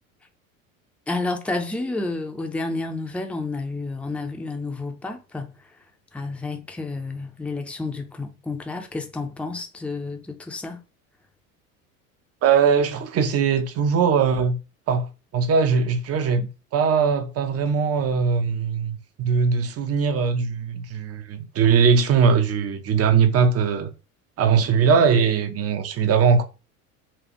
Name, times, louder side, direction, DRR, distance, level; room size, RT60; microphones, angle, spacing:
voice 1, 1.1-5.6 6.1-10.8, left 3 dB, 5° left, 0.6 m, -30 dB
voice 2, 12.4-14.6 14.9-15.1 15.3-23.9 24.4-26.4, right 6 dB, 35° right, 0.8 m, -20 dB
4.3 x 2.4 x 3.0 m
hypercardioid pair, 80°, 43 cm